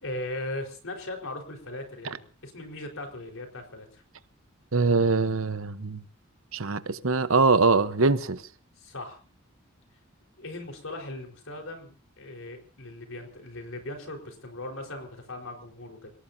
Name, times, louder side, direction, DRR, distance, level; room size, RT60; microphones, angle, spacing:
voice 1, 0.0-4.0 8.8-9.2 10.4-16.1, left 1 dB, 75° left, 4.5 m, -38 dB
voice 2, 4.7-6.0 6.5-8.4, right 3 dB, 80° right, 1.0 m, -23 dB
29.0 x 18.0 x 2.8 m
head